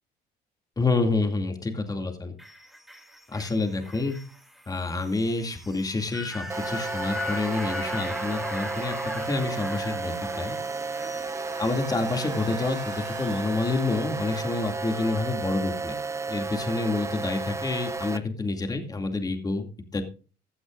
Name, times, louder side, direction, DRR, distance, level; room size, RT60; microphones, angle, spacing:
voice 1, 0.8-2.3 3.3-4.2 4.7-9.0 9.2-10.6 11.6-16.0 16.3-20.0, left 3 dB, 20° left, 5 dB, 2.4 m, -28 dB
sound 1, 2.4-14.7 15.1-15.2, left 1 dB, ahead, 2.5 m, -40 dB
sound 2, 6.5-18.2, right 3 dB, 15° right, 0.7 m, -33 dB
sound 3, 9.6-14.5, right 6 dB, 45° right, 3.0 m, -47 dB
16.0 x 12.0 x 2.5 m, 0.37 s
cardioid pair, 110°, 17 cm